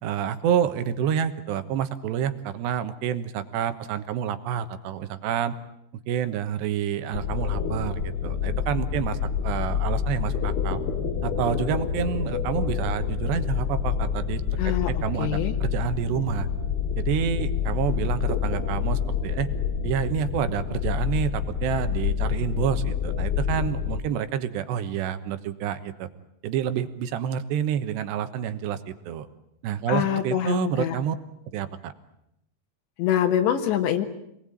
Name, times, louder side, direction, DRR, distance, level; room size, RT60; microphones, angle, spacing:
voice 1, 0.0-5.6 6.1-9.2 9.4-10.8 11.2-16.5 17.0-19.5 19.8-26.1 26.4-29.3 29.6-31.2 31.5-31.9, right 9 dB, 80° right, 10 dB, 3.3 m, -28 dB
sound 1, 7.1-24.0, left 7 dB, 45° left, 2.0 m, -27 dB
voice 2, 14.6-15.5 29.9-31.0 33.0-34.1, left 10 dB, 80° left, 5 dB, 3.5 m, -25 dB
27.5 x 20.0 x 8.9 m, 0.81 s
omnidirectional pair, 5.0 m